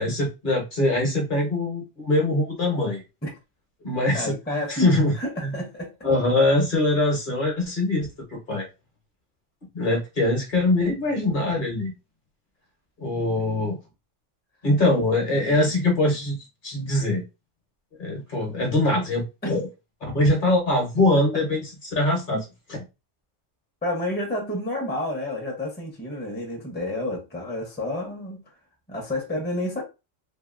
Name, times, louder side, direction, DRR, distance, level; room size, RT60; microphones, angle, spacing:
voice 1, 0.0-3.0 3.8-5.1 5.4-5.6 6.0-8.7 9.7-11.9 13.0-13.8 14.6-16.4 16.6-17.2 18.0-19.7 20.0-22.8, left 2 dB, 45° left, 1 dB, 1.1 m, -23 dB
voice 2, 4.1-4.9 5.1-5.9 13.4-13.6 19.4-19.5 23.8-28.4 28.9-29.8, left 1 dB, 10° left, 0 dB, 0.7 m, -30 dB
2.8 x 2.6 x 2.4 m, 0.26 s
omnidirectional pair, 1.2 m